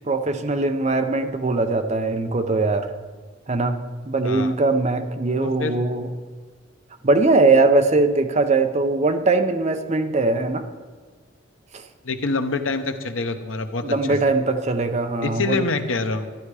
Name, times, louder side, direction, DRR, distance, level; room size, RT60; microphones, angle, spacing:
voice 1, 0.1-2.9 3.5-3.8 4.1-6.1 7.0-10.6 11.7-11.8 13.8-15.6, right 3 dB, 35° right, 7 dB, 0.7 m, -21 dB
voice 2, 4.2-4.5 5.4-5.7 12.0-14.2 15.2-16.3, left 3 dB, 90° left, 8 dB, 0.9 m, -26 dB
12.5 x 11.0 x 4.9 m, 1.5 s
head